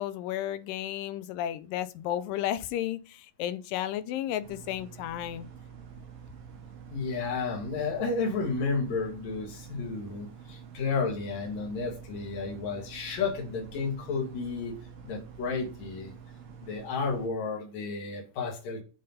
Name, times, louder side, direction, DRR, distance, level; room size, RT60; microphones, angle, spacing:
voice 1, 0.0-5.5, left 12 dB, 80° left, 2.1 m, -33 dB
sound 1, 4.4-17.3, right 7 dB, 70° right, 2.8 m, -47 dB
voice 2, 6.9-16.1 16.6-18.8, left 4 dB, 55° left, 3.0 m, -32 dB
7.5 x 3.9 x 5.3 m
omnidirectional pair, 4.1 m